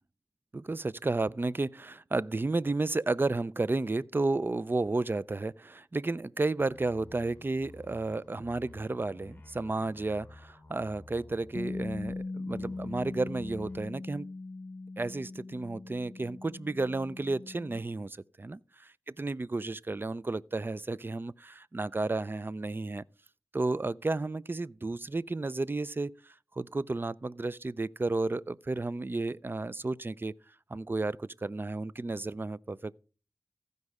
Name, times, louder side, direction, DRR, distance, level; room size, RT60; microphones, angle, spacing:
voice 1, 0.5-14.3 15.0-18.6 19.2-23.0 23.5-30.3 30.7-33.0, right 2 dB, 35° right, 0.4 m, -32 dB
sound 1, 6.7-12.2 12.5-13.9, left 2 dB, 25° left, 3.0 m, -52 dB
Bass guitar, 11.5-17.8, left 3 dB, 60° left, 0.5 m, -40 dB
15.0 x 5.3 x 4.8 m
wide cardioid pair, 55°, 7 cm